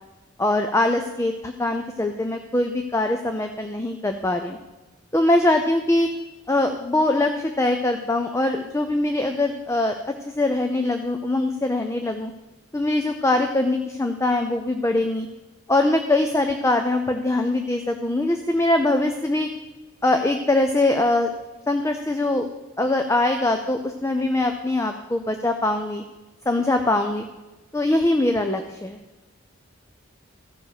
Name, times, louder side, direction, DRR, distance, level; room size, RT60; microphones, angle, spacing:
voice 1, 0.4-4.6 5.1-6.1 6.5-12.3 12.7-15.3 15.7-19.5 20.0-21.3 21.7-22.5 22.8-26.0 26.5-27.2 27.7-29.0, left 2 dB, 15° left, 5 dB, 0.5 m, -22 dB
14.5 x 5.2 x 6.6 m, 1.1 s
head